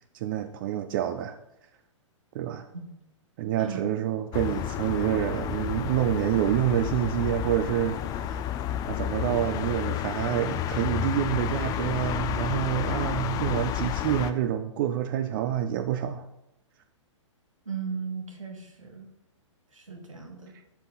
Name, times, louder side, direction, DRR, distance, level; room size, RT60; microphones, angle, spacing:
voice 1, 0.1-1.4 2.3-2.7 3.4-8.4 8.8-16.3, right 11 dB, 40° right, 10 dB, 0.5 m, -27 dB
voice 2, 3.6-3.9 17.6-19.1 19.7-20.5, right 5 dB, 85° right, 3 dB, 1.6 m, -37 dB
sound 1, 4.3-14.3, left 11 dB, 25° left, 0.5 m, -31 dB
11.5 x 5.4 x 3.8 m, 0.88 s
figure-of-eight pair, 115°, 16 cm